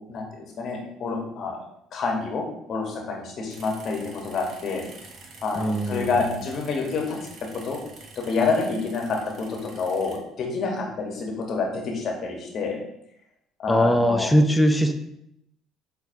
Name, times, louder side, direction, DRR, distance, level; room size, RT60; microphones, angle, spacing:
voice 1, 0.1-1.6 1.9-2.4 2.7-4.8 5.4-7.2 7.6-7.8 8.2-12.8 13.6-14.3, left 4 dB, 50° left, 0 dB, 0.9 m, -28 dB
sound 1, 3.5-10.2, right 3 dB, 50° right, 0.6 m, -47 dB
voice 2, 5.6-6.1 13.7-14.9, equal, 5° left, 5 dB, 0.4 m, -20 dB
5.5 x 2.2 x 2.6 m, 0.77 s
figure-of-eight pair, 55°, 0 cm